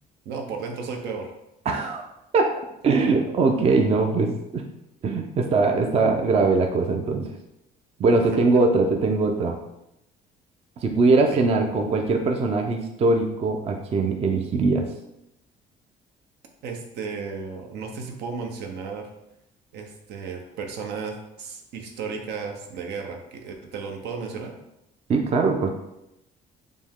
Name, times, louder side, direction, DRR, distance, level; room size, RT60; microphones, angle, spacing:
voice 1, 0.3-1.3 8.3-8.6 11.3-11.5 16.6-19.1 19.7-24.5, right 5 dB, 80° right, 3 dB, 0.7 m, -34 dB
voice 2, 1.7-2.0 2.3-2.5 2.8-4.6 5.0-7.3 8.0-9.6 10.8-14.8 25.1-25.7, right 3 dB, 35° right, 3 dB, 0.5 m, -21 dB
5.0 x 2.1 x 3.6 m, 0.86 s
cardioid pair, 110°, 17 cm